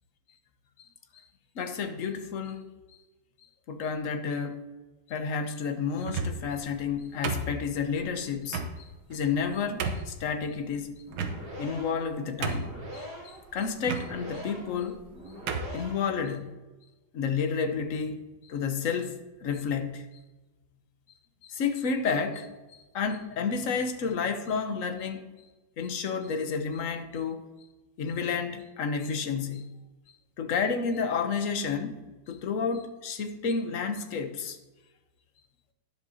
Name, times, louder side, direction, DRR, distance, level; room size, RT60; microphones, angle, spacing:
voice 1, 1.5-2.6 3.7-4.6 5.1-10.9 11.6-15.0 15.7-16.5 17.1-19.2 19.4-20.0 21.4-25.2 25.8-27.4 28.0-29.7 30.4-32.0 32.3-34.6, left 5 dB, 55° left, 8 dB, 1.0 m, -31 dB
sound 1, 6.0-6.5 7.2-7.9 8.5-8.7 9.3-9.4 9.8-10.1 11.1-11.7 12.0-12.1 12.4-12.9 13.8-14.1 14.9-15.1 15.5-15.8, right 4 dB, 80° right, 1.7 m, -32 dB
sound 2, 11.0-16.2, equal, 55° right, 4.2 m, -43 dB
12.0 x 10.5 x 2.8 m, 1.2 s
omnidirectional pair, 2.1 m